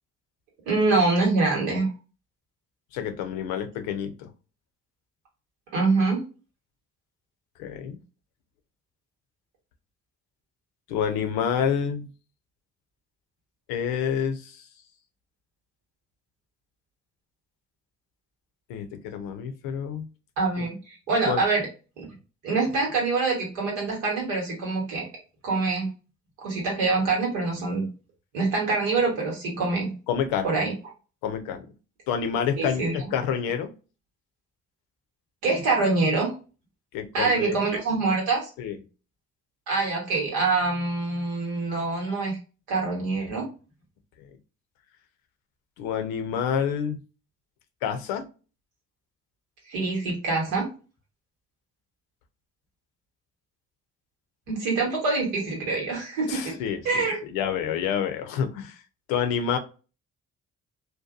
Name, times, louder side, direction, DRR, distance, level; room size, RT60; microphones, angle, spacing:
voice 1, 0.7-1.9 5.7-6.2 20.4-21.7 22.0-22.1 22.4-25.0 25.4-25.9 26.4-27.9 28.3-29.9 30.4-30.7 32.6-32.9 35.4-36.3 37.1-38.5 39.7-42.4 42.7-43.5 49.7-50.7 54.5-56.5 56.8-57.2, right 3 dB, 85° right, -1 dB, 1.1 m, -25 dB
voice 2, 2.9-4.3 7.6-8.0 10.9-12.1 13.7-14.6 18.7-20.1 20.6-20.7 21.3-21.4 30.1-30.5 31.2-31.7 32.1-33.7 36.9-37.6 38.6-38.8 45.8-47.0 47.8-48.3 56.3-58.8 59.1-59.6, left 8 dB, 80° left, 7 dB, 0.6 m, -28 dB
2.7 x 2.2 x 2.3 m, 0.33 s
hypercardioid pair, 45°, 35 cm